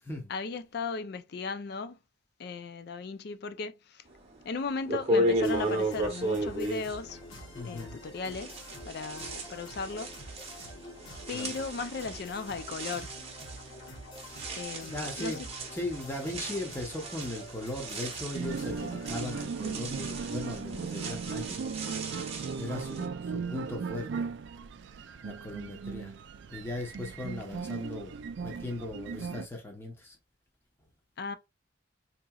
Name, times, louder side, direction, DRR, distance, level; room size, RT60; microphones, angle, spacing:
voice 1, 0.3-2.0 2.4-4.0 4.4-7.2 7.6-8.5 8.8-10.1 11.3-13.1 14.6-15.4 31.2-31.4, left 4 dB, 55° left, 0.4 m, -36 dB
sound 1, 4.3-4.4 4.9-8.0 8.3-23.0, right 1 dB, 30° right, 0.8 m, -35 dB
sound 2, 5.3-19.4, left 1 dB, 75° left, 1.4 m, -47 dB
voice 2, 7.5-8.0 11.3-11.5 14.9-15.4 15.7-21.6 22.6-24.3 25.2-26.2 26.5-28.1 28.4-30.2, left 2 dB, 10° left, 0.7 m, -38 dB
sound 3, 18.3-29.5, right 5 dB, 65° right, 0.3 m, -37 dB
3.9 x 2.9 x 2.3 m
head